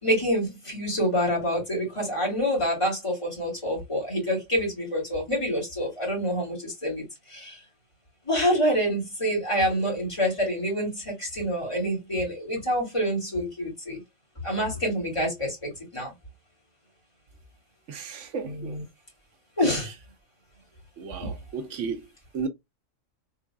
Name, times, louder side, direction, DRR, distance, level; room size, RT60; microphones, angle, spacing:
voice 1, 0.0-7.6 8.3-14.0 14.4-16.1 18.4-18.8 19.6-19.9 21.2-21.3, equal, 25° left, 2.8 m, -27 dB
voice 2, 17.9-18.8 21.0-22.0 22.3-22.5, right 5 dB, 70° right, 1.1 m, -33 dB
3.9 x 3.7 x 2.2 m
omnidirectional pair, 1.3 m